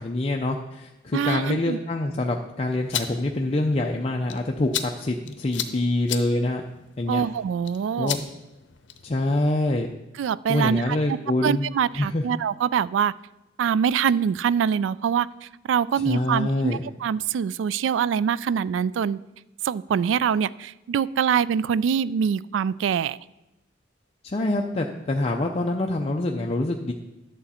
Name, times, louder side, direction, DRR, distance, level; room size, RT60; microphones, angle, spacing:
voice 1, 0.0-6.6 7.0-7.2 8.0-8.3 9.0-9.9 10.5-12.2 16.0-16.8 24.2-26.9, left 2 dB, 35° left, 1 dB, 0.5 m, -25 dB
voice 2, 1.1-1.8 7.1-8.1 10.2-11.0 11.4-13.1 13.6-19.2 19.6-23.2, right 7 dB, 85° right, 19 dB, 0.3 m, -24 dB
sound 1, 2.7-9.2, left 10 dB, 80° left, 0.7 m, -36 dB
11.5 x 7.0 x 4.3 m, 0.97 s
head